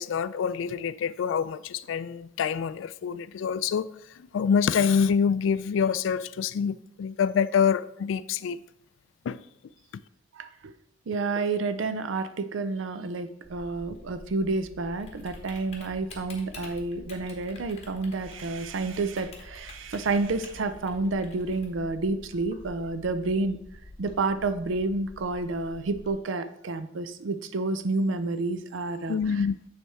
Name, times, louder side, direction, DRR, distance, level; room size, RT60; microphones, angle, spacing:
voice 1, 0.0-3.9 4.1-8.6 9.3-9.4 29.1-29.5, left 6 dB, 85° left, 0.3 m, -26 dB
voice 2, 10.3-10.7 11.1-23.6 24.0-29.5, right 3 dB, 85° right, 0.5 m, -30 dB
Typing, 13.4-26.1, left 2 dB, 35° left, 1.1 m, -47 dB
9.0 x 3.4 x 4.5 m
head